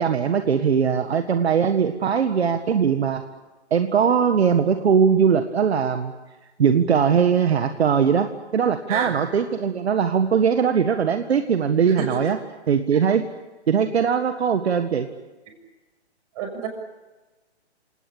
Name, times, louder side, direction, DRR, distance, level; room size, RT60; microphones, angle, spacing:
voice 1, 0.0-3.2 3.7-6.1 6.6-8.3 8.5-12.4 12.7-13.2 13.7-15.1, right 7 dB, 70° right, 7 dB, 1.8 m, -20 dB
voice 2, 11.9-12.2 12.9-13.1 15.5-15.6 16.3-16.7, right 6 dB, 35° right, 4 dB, 6.9 m, -30 dB
28.0 x 18.5 x 8.7 m, 1.2 s
hypercardioid pair, 150°, 33 cm